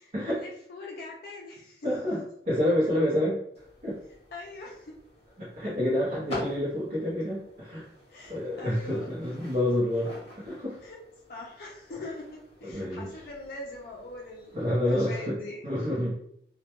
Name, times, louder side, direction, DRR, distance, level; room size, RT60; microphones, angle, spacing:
voice 1, 0.0-1.9 2.6-3.0 4.3-4.9 8.1-9.2 10.8-11.0 11.3-15.6, left 2 dB, 55° left, -2 dB, 0.4 m, -43 dB
voice 2, 1.8-3.4 3.8-4.0 5.4-7.9 8.3-10.8 12.6-13.1 14.5-15.4 15.6-16.2, left 1 dB, 40° right, -8 dB, 0.7 m, -28 dB
sound 1, 3.5-15.0, left 1 dB, 35° left, 0.9 m, -47 dB
2.2 x 2.1 x 2.9 m, 0.71 s
head